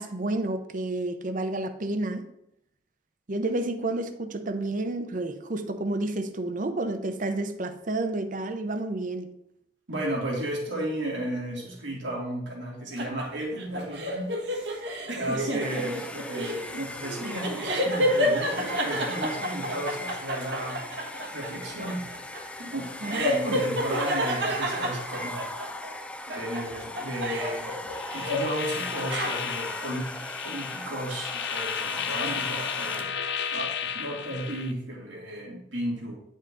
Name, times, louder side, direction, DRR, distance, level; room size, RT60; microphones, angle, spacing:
voice 1, 0.0-2.2 3.3-9.3 23.0-23.6, right 2 dB, 45° right, 8 dB, 0.7 m, -30 dB
voice 2, 9.9-14.3 15.1-20.8 21.3-22.0 22.6-25.5 26.3-27.8 28.1-30.1 30.4-33.2 33.5-36.2, right 1 dB, 85° right, -3 dB, 2.6 m, -33 dB
sound 1, 13.0-25.9 26.3-28.6 28.9-29.7, equal, 65° right, 1.3 m, -30 dB
Domestic sounds home sounds, 15.6-33.3, left 1 dB, 5° left, 0.4 m, -39 dB
sound 2, 27.9-34.7, left 8 dB, 65° left, 0.6 m, -34 dB
9.8 x 5.4 x 3.8 m, 0.78 s
head